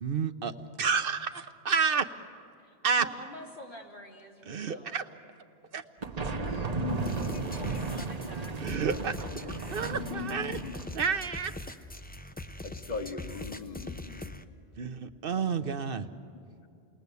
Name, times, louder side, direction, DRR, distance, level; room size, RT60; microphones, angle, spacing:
voice 1, 0.0-2.1 2.8-3.0 4.5-5.0 5.7-5.8 6.2-6.3 8.6-9.3 9.7-10.6 10.9-11.5 14.8-16.1, right 6 dB, 60° right, 9 dB, 1.0 m, -30 dB
voice 2, 2.6-5.2 7.1-9.6, left 1 dB, 80° left, -2 dB, 3.3 m, -48 dB
sound 1, 6.0-11.0, right 4 dB, 40° right, 0.9 m, -35 dB
voice 3, 6.3-7.4 9.3-10.8 12.6-14.4, left 5 dB, 40° left, 5 dB, 1.4 m, -39 dB
sound 2, 7.0-14.4, left 2 dB, 10° left, 0.5 m, -41 dB
28.5 x 20.0 x 8.3 m, 2.5 s
omnidirectional pair, 1.1 m